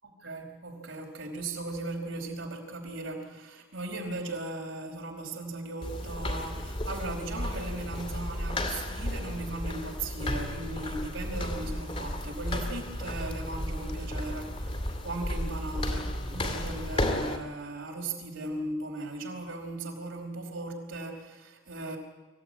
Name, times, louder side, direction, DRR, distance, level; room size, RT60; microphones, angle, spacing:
voice 1, 0.0-22.0, right 2 dB, 65° right, 1 dB, 5.0 m, -37 dB
sound 1, 5.8-17.4, left 1 dB, 25° left, 2.6 m, -33 dB
25.0 x 16.0 x 9.7 m, 1.3 s
head